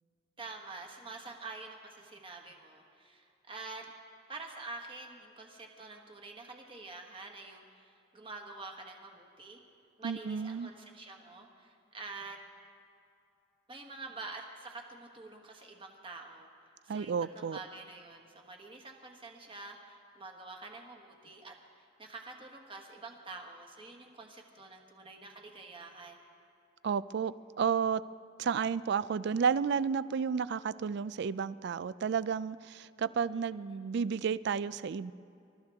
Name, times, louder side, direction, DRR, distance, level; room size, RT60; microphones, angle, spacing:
voice 1, 0.4-3.9 4.3-9.6 10.0-12.4 13.7-16.5 16.8-26.2 33.3-33.4 33.7-33.8, right 3 dB, 25° right, 2 dB, 1.4 m, -47 dB
voice 2, 10.0-10.7 16.9-17.6 26.8-28.0 28.4-35.1, right 6 dB, 55° right, 17 dB, 0.3 m, -32 dB
26.5 x 13.5 x 3.5 m, 2.6 s
head